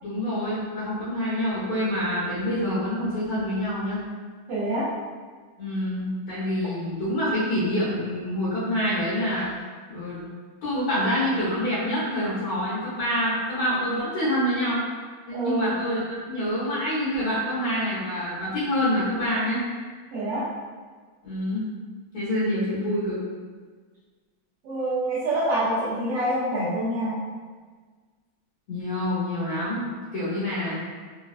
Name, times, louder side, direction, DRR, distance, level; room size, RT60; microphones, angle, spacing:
voice 1, 0.0-4.0 5.6-9.5 9.9-10.3 10.6-14.9 15.3-19.7 21.2-21.6 22.1-23.2 28.7-30.8, equal, 85° left, -11 dB, 2.0 m, -26 dB
voice 2, 4.5-4.9 15.3-15.8 20.1-20.5 24.6-27.2, right 1 dB, 70° right, -11 dB, 1.3 m, -26 dB
4.6 x 2.1 x 2.4 m, 1.5 s
omnidirectional pair, 2.3 m